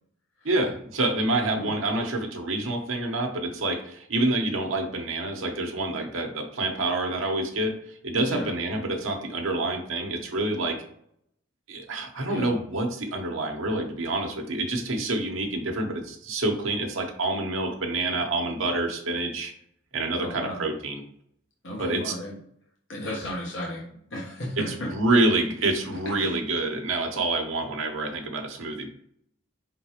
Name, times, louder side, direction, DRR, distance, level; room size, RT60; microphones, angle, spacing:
voice 1, 0.4-10.8 11.7-19.5 19.9-21.0 21.8-22.1 24.6-28.9, right 2 dB, 80° right, 3 dB, 0.9 m, -27 dB
voice 2, 20.2-20.6 21.6-22.3 22.9-23.8 24.1-24.9 26.0-26.3, left 1 dB, 65° left, -4 dB, 1.0 m, -34 dB
4.7 x 3.8 x 2.9 m, 0.68 s
head